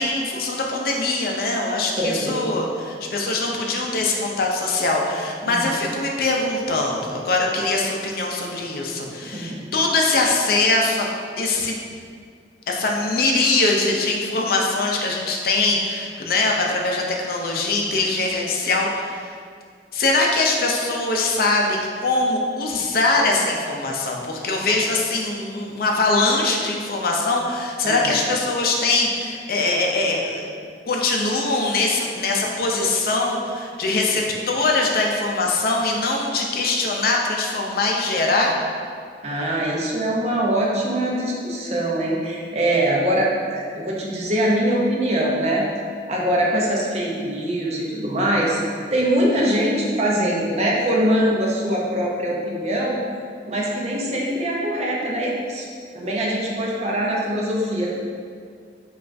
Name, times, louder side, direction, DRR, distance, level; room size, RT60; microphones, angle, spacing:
voice 1, 0.0-11.0 11.4-11.8 12.7-19.3 19.9-30.5 30.9-38.5, left 2 dB, 55° left, 0 dB, 0.4 m, -22 dB
voice 2, 2.0-2.5 5.5-5.7 9.3-9.6 27.8-28.2 39.2-45.7 46.1-48.6 48.9-53.0 53.5-55.7 55.9-58.0, right 1 dB, 40° right, -3 dB, 0.5 m, -23 dB
5.1 x 2.4 x 2.5 m, 2.1 s
head